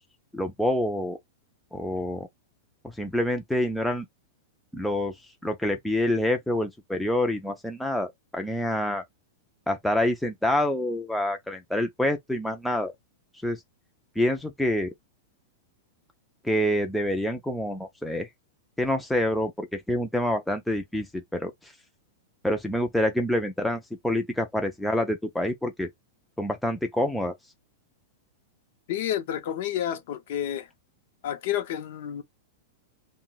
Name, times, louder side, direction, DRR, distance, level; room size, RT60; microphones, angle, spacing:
voice 1, 0.3-1.2 1.7-2.3 2.8-4.1 4.7-5.1 5.4-9.0 9.7-12.9 13.4-13.6 14.2-14.9 16.4-18.3 18.8-21.7 22.4-25.9 26.4-27.3, left 1 dB, ahead, 0.4 m, -27 dB
voice 2, 28.9-30.7 31.2-32.2, left 10 dB, 55° left, 0.6 m, -30 dB
2.2 x 2.1 x 3.8 m
supercardioid pair, 160°, 0 cm